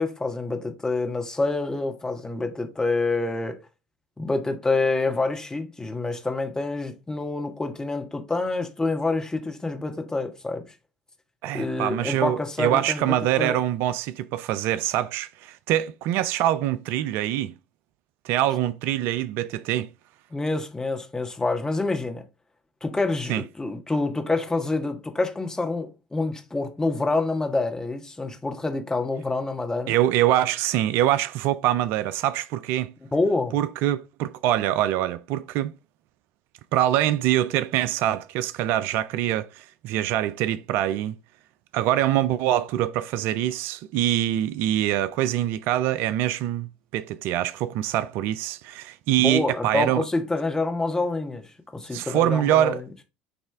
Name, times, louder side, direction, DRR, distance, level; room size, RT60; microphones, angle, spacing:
voice 1, 0.0-3.6 4.2-10.6 11.5-13.5 20.3-22.2 22.8-29.9 33.1-33.6 49.2-52.8, left 3 dB, 15° left, 1.5 m, -27 dB
voice 2, 11.4-17.5 18.2-19.9 23.3-23.4 29.9-32.9 33.5-35.7 36.7-41.2 41.7-50.1 51.9-52.8, right 13 dB, 60° right, 0.3 m, -24 dB
9.5 x 3.2 x 3.4 m
hypercardioid pair, 65°, 4 cm